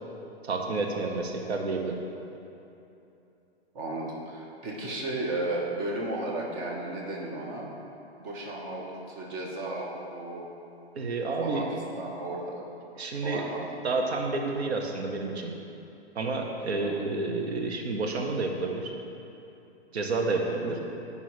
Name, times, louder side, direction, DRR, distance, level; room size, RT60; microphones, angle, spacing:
voice 1, 0.4-2.0 11.0-11.7 13.0-13.4 13.8-15.5 16.1-18.9 19.9-20.8, right 3 dB, 80° right, 2 dB, 0.9 m, -30 dB
voice 2, 3.7-7.7 8.2-10.4 11.4-12.6 13.2-13.9 16.8-17.0 20.6-20.7, right 2 dB, 25° right, -3 dB, 1.1 m, -34 dB
9.5 x 5.3 x 3.1 m, 2.8 s
hypercardioid pair, 145°, 32 cm